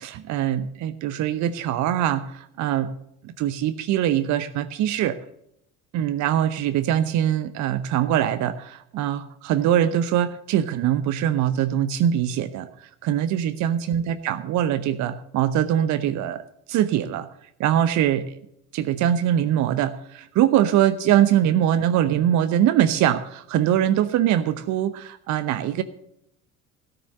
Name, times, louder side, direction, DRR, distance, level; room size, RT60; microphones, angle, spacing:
voice 1, 0.0-2.9 3.4-5.2 5.9-16.4 16.7-17.3 17.6-18.3 18.7-25.8, right 11 dB, 40° right, 13 dB, 0.8 m, -22 dB
17.0 x 6.7 x 7.5 m, 0.77 s
figure-of-eight pair, 60°, 44 cm